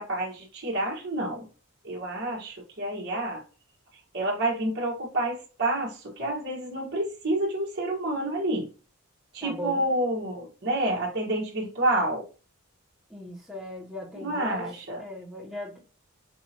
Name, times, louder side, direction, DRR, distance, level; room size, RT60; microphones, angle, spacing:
voice 1, 0.0-1.5 1.8-3.4 4.1-8.7 9.3-12.2 14.1-15.0, right 1 dB, 55° right, 1.2 m, -29 dB
voice 2, 9.4-9.8 13.1-15.8, left 1 dB, ahead, 1.2 m, -38 dB
4.6 x 2.8 x 2.8 m
head